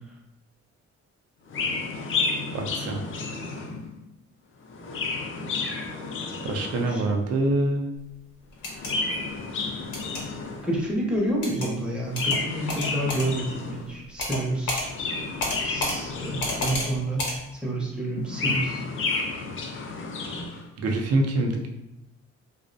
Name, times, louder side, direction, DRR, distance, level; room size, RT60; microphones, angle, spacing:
Chirp tweet, 1.5-3.9 4.6-7.1 8.6-10.8 12.0-13.9 14.7-17.0 18.1-20.6, left 3 dB, 45° left, 0.4 m, -31 dB
voice 1, 2.5-3.0 6.4-7.9 20.8-21.7, right 2 dB, 55° right, 2 dB, 0.5 m, -25 dB
sound 1, 8.5-8.9 9.9-10.2 11.4-11.7 12.2-12.4 12.7-13.3 14.2-14.4 14.7-14.9 15.4-16.0 16.4-16.9 17.2-17.4, left 2 dB, 70° left, 0.8 m, -29 dB
voice 2, 10.6-14.9 15.6-17.3 17.6-18.8, right 1 dB, 5° right, -3 dB, 0.6 m, -29 dB
2.4 x 2.0 x 2.5 m, 0.87 s
cardioid pair, 90°, 30 cm